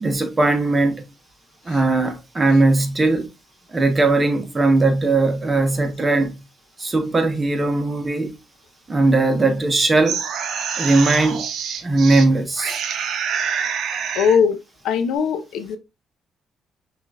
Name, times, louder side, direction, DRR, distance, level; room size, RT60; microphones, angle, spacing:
voice 1, 0.0-1.0 1.7-3.3 3.7-6.3 6.8-8.3 8.9-10.2 10.8-11.5 11.8-12.8, right 2 dB, 25° right, 1.0 m, -19 dB
sound 1, 9.8-12.3 12.6-14.4, right 7 dB, 75° right, 0.6 m, -26 dB
voice 2, 14.1-14.6 14.8-15.8, left 6 dB, 85° left, 0.6 m, -20 dB
5.7 x 2.6 x 2.4 m
cardioid pair, 90°, 0 cm